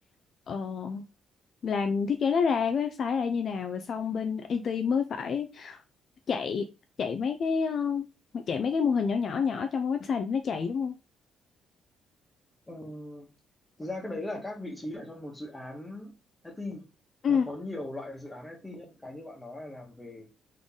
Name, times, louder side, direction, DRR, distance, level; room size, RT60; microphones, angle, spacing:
voice 1, 0.5-1.0 1.6-5.8 6.3-6.7 7.0-8.1 8.5-11.0 17.2-17.5, left 6 dB, 55° left, 7 dB, 0.5 m, -28 dB
voice 2, 12.7-13.3 13.8-16.1 16.4-16.9 17.3-20.3, left 1 dB, 10° left, 1 dB, 1.5 m, -39 dB
4.0 x 3.3 x 3.7 m, 0.29 s
cardioid pair, 90°, 0 cm